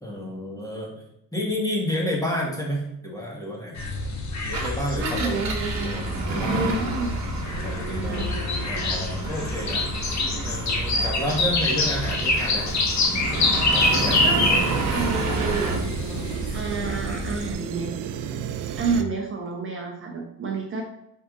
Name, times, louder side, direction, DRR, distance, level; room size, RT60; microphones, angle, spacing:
voice 1, 0.0-0.9 1.3-3.8 4.4-5.4 5.8-6.7 7.6-8.3 8.6-12.8 13.7-14.2 14.9-15.1 16.5-16.7, left 1 dB, 10° left, -3 dB, 2.0 m, -30 dB
sound 1, 3.8-17.5, left 2 dB, 60° left, 1.5 m, -26 dB
Engine, 4.4-15.9, right 3 dB, 60° right, 1.2 m, -31 dB
voice 2, 4.8-6.0 6.5-7.3 7.9-8.3 14.2-14.5 14.9-15.8 16.5-17.9 18.8-20.8, right 4 dB, 40° right, 1 dB, 1.0 m, -29 dB
sound 2, 13.8-19.0, right 8 dB, 75° right, 0.6 m, -32 dB
5.0 x 4.9 x 4.0 m, 0.80 s
cardioid pair, 110°, 32 cm